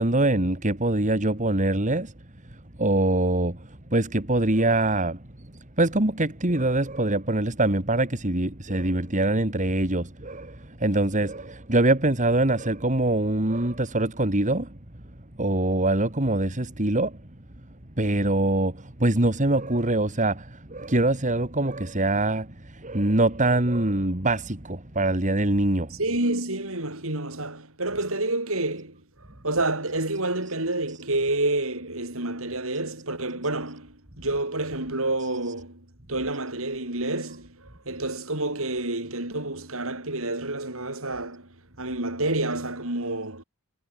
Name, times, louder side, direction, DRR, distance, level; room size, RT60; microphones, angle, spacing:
voice 1, 0.0-2.1 2.8-5.5 5.8-14.7 15.4-17.2 18.0-26.0, right 2 dB, 35° right, 2.9 m, -24 dB
voice 2, 25.9-43.4, right 2 dB, 65° right, 7.2 m, -29 dB
head